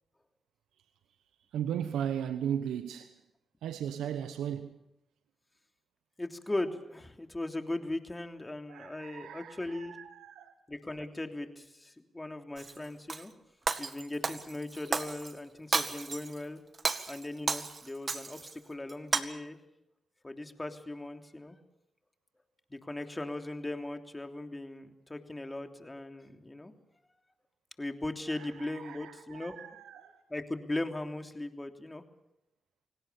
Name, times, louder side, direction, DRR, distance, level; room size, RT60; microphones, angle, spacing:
voice 1, 1.5-3.2 3.6-4.8 8.7-10.5 28.3-30.2, right 9 dB, 85° right, 1.0 m, -37 dB
voice 2, 6.2-10.0 10.7-13.3 13.8-16.6 17.1-19.6 20.2-21.6 22.7-26.7 27.8-29.6 30.3-32.0, left 2 dB, 20° left, 3.1 m, -38 dB
Shatter, 12.6-13.2 13.7-15.3 15.7-16.4 16.7-18.5 18.9-19.2, right 4 dB, 50° right, 1.8 m, -33 dB
28.5 x 18.5 x 7.0 m
supercardioid pair, 45°, 0 cm